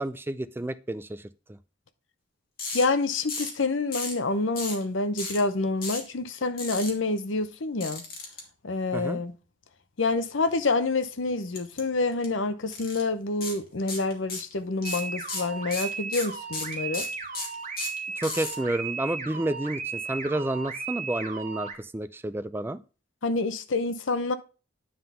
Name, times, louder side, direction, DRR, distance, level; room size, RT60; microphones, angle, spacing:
voice 1, 0.0-1.6 8.9-9.2 18.2-22.8, right 1 dB, 10° right, 0.3 m, -30 dB
sound 1, 2.6-2.8 3.3-3.6 3.9-4.2 4.6-4.8 5.2-5.4 5.8-6.1 6.6-6.9 7.8-8.4 11.5-11.8 12.1-12.3 12.7-13.0 13.4-13.6 13.9-14.5 14.8-18.5, left 3 dB, 50° left, 2.2 m, -34 dB
voice 2, 2.7-8.0 8.6-9.3 10.0-17.1 23.2-24.4, left 3 dB, 80° left, 0.8 m, -27 dB
Alarm Off The Hook, 14.8-21.7, right 5 dB, 40° right, 1.3 m, -35 dB
9.6 x 3.8 x 5.5 m
head